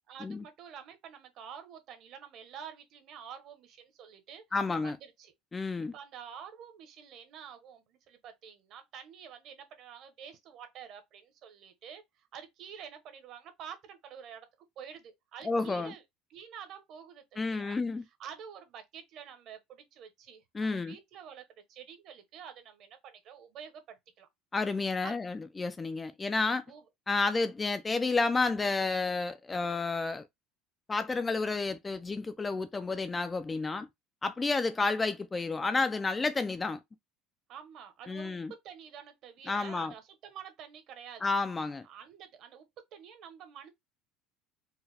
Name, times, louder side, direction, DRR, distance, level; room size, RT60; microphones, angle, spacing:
voice 1, 0.1-4.4 4.8-5.3 5.9-14.5 14.8-16.0 16.3-17.8 18.2-24.3 25.0-25.2 26.7-26.8 37.5-41.3 41.8-43.7, right 8 dB, 45° right, 0.9 m, -48 dB
voice 2, 4.5-5.0 5.5-5.9 15.4-15.9 17.4-18.0 20.5-21.0 24.5-26.6 27.1-30.2 30.9-33.9 34.2-36.8 38.1-38.5 39.5-39.9 41.2-41.8, left 3 dB, 15° left, 0.3 m, -30 dB
4.6 x 2.1 x 3.3 m
cardioid pair, 165°, 0 cm